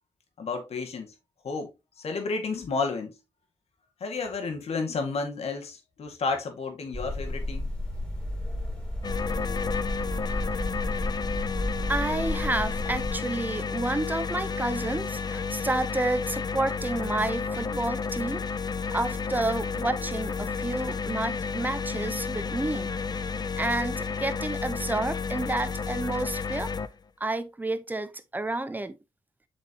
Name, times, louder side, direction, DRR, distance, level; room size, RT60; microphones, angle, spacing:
voice 1, 0.4-1.1 1.4-1.7 2.0-3.2 4.0-7.7, left 4 dB, 80° left, 2.0 m, -31 dB
sound 1, 6.9-13.2, left 1 dB, 10° left, 3.9 m, -32 dB
sound 2, 9.0-26.9, left 5 dB, 40° left, 0.5 m, -31 dB
voice 2, 11.9-18.4 18.9-22.9 23.6-26.7 27.2-29.0, right 2 dB, 15° right, 0.9 m, -30 dB
7.4 x 5.1 x 2.9 m
wide cardioid pair, 90°, 10 cm